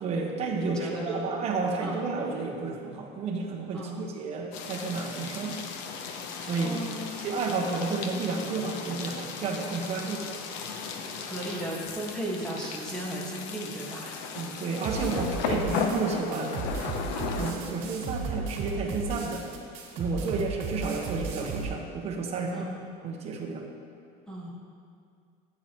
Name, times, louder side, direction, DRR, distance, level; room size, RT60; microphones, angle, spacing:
voice 1, 0.0-5.6 6.4-6.8 7.2-10.4 14.3-16.6 17.4-19.4 19.9-22.7 23.0-23.7, right 4 dB, 30° right, 0 dB, 1.1 m, -31 dB
voice 2, 0.5-1.3 1.8-2.0 3.7-4.0 6.6-7.2 10.0-10.3 11.1-14.2 15.0-15.3 20.2-20.4 22.5-22.9 24.3-24.5, right 1 dB, 5° left, -5 dB, 1.6 m, -36 dB
sound 1, 4.5-17.5, left 5 dB, 60° left, 0.9 m, -36 dB
sound 2, 14.8-21.6, right 4 dB, 55° right, 2.0 m, -35 dB
12.0 x 8.7 x 3.0 m, 2.3 s
cardioid pair, 155°, 21 cm